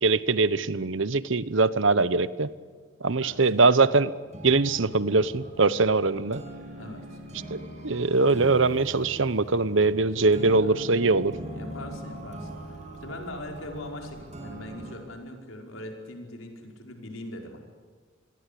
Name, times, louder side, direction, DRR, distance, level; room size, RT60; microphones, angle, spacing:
voice 1, 0.0-2.5 3.0-4.1 4.4-6.4 7.5-11.4, right 3 dB, 70° right, 16 dB, 1.0 m, -22 dB
sound 1, 4.2-14.9, right 1 dB, 35° right, 6.2 m, -42 dB
voice 2, 6.7-7.2 10.2-10.9 11.5-17.6, left 1 dB, 85° left, 2 dB, 5.1 m, -41 dB
28.0 x 21.5 x 8.5 m, 1.5 s
head